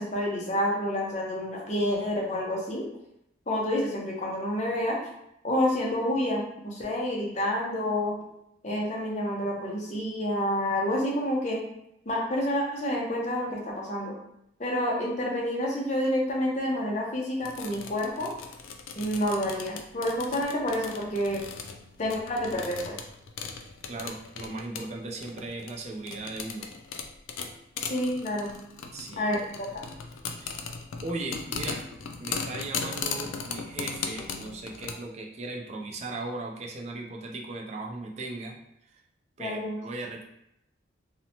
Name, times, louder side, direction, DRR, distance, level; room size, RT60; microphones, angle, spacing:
voice 1, 0.0-2.9 3.5-5.0 5.4-8.2 8.6-11.6 12.1-14.1 14.6-18.3 19.0-21.4 22.0-23.0 27.8-28.5 29.2-29.4 39.4-39.8, left 1 dB, 35° left, -2 dB, 0.5 m, -28 dB
sound 1, 17.4-34.9, left 5 dB, 90° left, 0.3 m, -38 dB
voice 2, 23.9-26.7 28.9-29.7 30.4-30.6 31.0-31.8 32.2-38.6 38.8-39.0 39.4-40.2, right 2 dB, 35° right, 1 dB, 0.3 m, -37 dB
2.8 x 2.0 x 2.7 m, 0.80 s
head